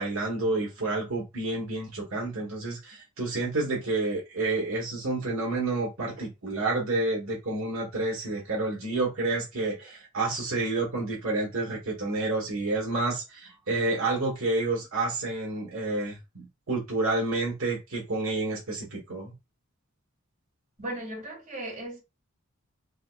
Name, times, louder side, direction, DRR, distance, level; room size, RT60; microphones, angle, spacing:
voice 1, 0.0-19.3, right 2 dB, 75° right, 1.4 m, -29 dB
voice 2, 20.8-22.0, right 1 dB, 35° right, 2.5 m, -36 dB
3.9 x 3.0 x 2.4 m
head